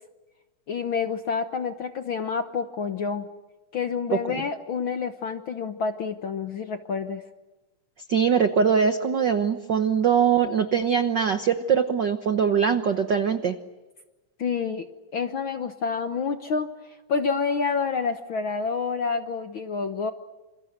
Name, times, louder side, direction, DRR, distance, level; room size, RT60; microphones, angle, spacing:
voice 1, 0.7-3.3 3.7-7.2 14.4-14.9 15.1-20.1, left 5 dB, 60° left, 7 dB, 1.3 m, -28 dB
voice 2, 8.1-13.6, right 7 dB, 70° right, 9 dB, 1.0 m, -22 dB
28.0 x 28.0 x 6.7 m, 1.2 s
omnidirectional pair, 3.6 m